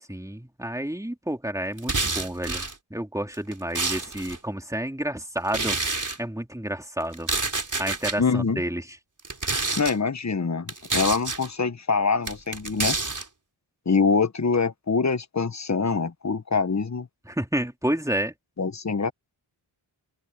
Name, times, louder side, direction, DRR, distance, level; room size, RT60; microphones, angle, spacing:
voice 1, 0.1-5.8 6.2-7.3 7.8-8.8 17.3-18.3, right 1 dB, 5° right, 3.3 m, -30 dB
sound 1, 1.8-2.7 3.3-4.4 5.5-6.2 7.1-8.2 9.2-9.9 10.7-11.5 12.3-13.3, right 3 dB, 40° right, 4.2 m, -28 dB
voice 2, 8.2-8.6 9.8-13.0 13.8-17.1 18.6-19.1, left 5 dB, 35° left, 1.2 m, -24 dB
open air
wide cardioid pair, 65°, 48 cm